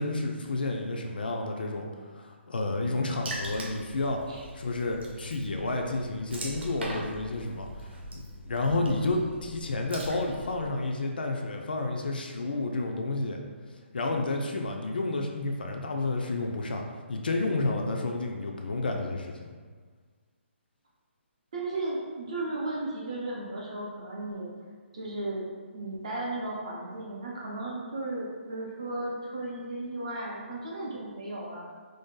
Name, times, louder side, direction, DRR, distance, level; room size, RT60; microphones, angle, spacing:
voice 1, 0.0-1.9 2.1-4.2 4.5-13.4 13.9-16.8 17.1-19.5, left 2 dB, 45° left, 2 dB, 0.4 m, -30 dB
Water / Splash splatter, 3.3-10.7, right 1 dB, 60° right, 0.8 m, -41 dB
voice 2, 21.5-24.5 24.9-25.5 25.7-31.6, right 2 dB, 30° right, -4 dB, 0.6 m, -35 dB
3.2 x 2.7 x 3.6 m, 1.5 s
hypercardioid pair, 180°, 7 cm